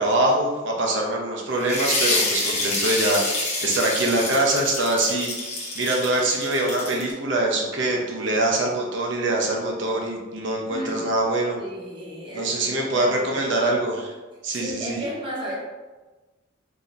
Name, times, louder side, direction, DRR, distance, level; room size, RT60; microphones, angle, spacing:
voice 1, 0.0-3.2 3.6-5.3 5.7-11.6 12.3-14.1 14.4-15.0, right 2 dB, 60° right, -1 dB, 0.7 m, -23 dB
sound 1, 1.6-7.1, left 2 dB, 35° left, 0.9 m, -27 dB
voice 2, 10.7-11.1 11.6-13.5 14.5-15.6, equal, 25° right, -6 dB, 0.8 m, -34 dB
4.0 x 2.8 x 2.5 m, 1.2 s
head